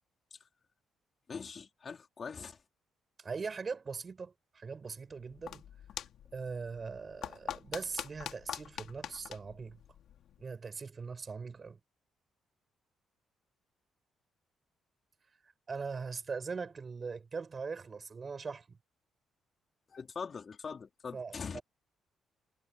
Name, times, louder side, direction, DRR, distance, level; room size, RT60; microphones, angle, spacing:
voice 1, 1.3-2.6 19.9-21.6, left 5 dB, 40° left, 4.1 m, -42 dB
voice 2, 3.2-5.7 6.3-9.8 10.4-11.8 15.7-18.8 21.1-21.6, right 5 dB, 35° right, 6.2 m, -41 dB
sound 1, 5.1-10.5, left 10 dB, 75° left, 2.8 m, -45 dB
cardioid pair, 90°, 0 cm